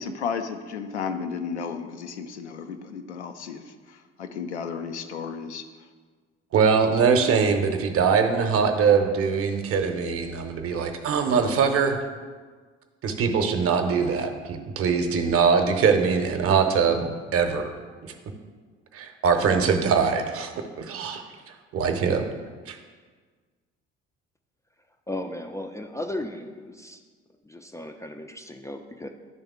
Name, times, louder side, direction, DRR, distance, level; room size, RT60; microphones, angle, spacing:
voice 1, 0.0-5.7, left 6 dB, 85° left, 7 dB, 0.5 m, -33 dB
voice 2, 6.5-12.0 13.0-17.7 18.0-18.1 18.9-20.5 20.8-21.2 21.7-22.3 22.7-22.8, right 6 dB, 45° right, 6 dB, 0.8 m, -22 dB
voice 3, 25.1-27.0 27.4-29.1, left 1 dB, 10° left, 4 dB, 0.3 m, -35 dB
10.5 x 3.5 x 3.5 m, 1.5 s
figure-of-eight pair, 55°, 33 cm